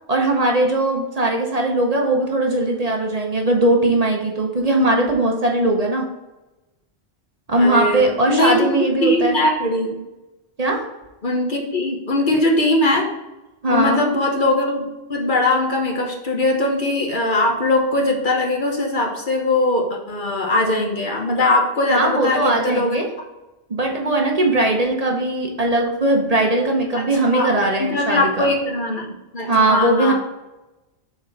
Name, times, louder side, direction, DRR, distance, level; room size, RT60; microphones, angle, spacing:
voice 1, 0.1-6.1 7.5-9.4 10.6-10.8 13.6-14.0 21.9-23.1 23.7-28.5 29.5-30.1, right 2 dB, 40° right, 0 dB, 1.0 m, -19 dB
voice 2, 7.6-10.0 11.2-13.1 13.7-23.0 26.9-27.0 27.3-27.5 27.8-30.1, left 2 dB, 50° left, 1 dB, 1.2 m, -20 dB
7.3 x 4.2 x 4.0 m, 1.0 s
omnidirectional pair, 1.1 m